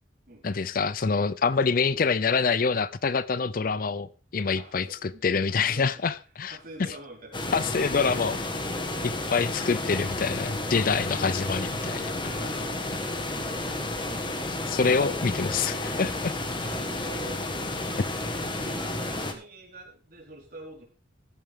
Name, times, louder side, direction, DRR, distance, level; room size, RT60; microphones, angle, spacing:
voice 1, 0.4-6.9 7.5-8.4 9.0-12.5 14.7-16.3, left 5 dB, 45° left, 0.5 m, -26 dB
voice 2, 4.5-6.1 6.5-7.6 12.5-12.7 13.1-14.1 16.6-17.8 18.2-20.8, right 2 dB, 50° right, 4.4 m, -47 dB
sound 1, 7.3-19.3, left 2 dB, 25° left, 1.5 m, -31 dB
14.5 x 10.5 x 3.6 m
head